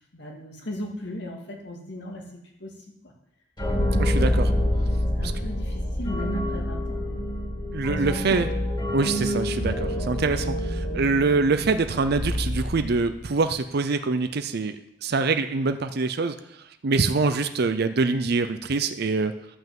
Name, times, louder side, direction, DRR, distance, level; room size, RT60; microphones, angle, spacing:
voice 1, 0.1-2.2 2.6-2.7 3.0-3.1 4.1-4.6 5.1-7.2 7.9-8.4, left 1 dB, 65° left, 0 dB, 2.2 m, -37 dB
sound 1, 3.6-13.2, equal, 25° left, 2.6 m, -27 dB
voice 2, 4.0-4.5 5.2-5.3 7.7-8.5 8.9-16.4 16.8-19.3, right 4 dB, 60° right, 9 dB, 0.6 m, -24 dB
11.5 x 5.6 x 7.6 m, 0.82 s
head